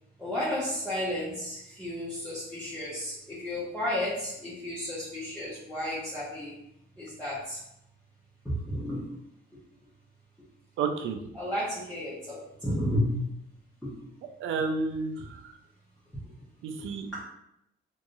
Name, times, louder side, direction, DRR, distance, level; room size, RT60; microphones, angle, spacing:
voice 1, 0.2-6.5 7.0-7.6 8.4-9.1 11.3-13.4 13.8-14.0, left 1 dB, 5° left, -11 dB, 1.3 m, -32 dB
voice 2, 10.8-11.2 14.2-15.6 16.6-17.1, right 4 dB, 80° right, 6 dB, 0.5 m, -31 dB
3.5 x 3.1 x 2.6 m, 0.77 s
cardioid pair, 90°, 20 cm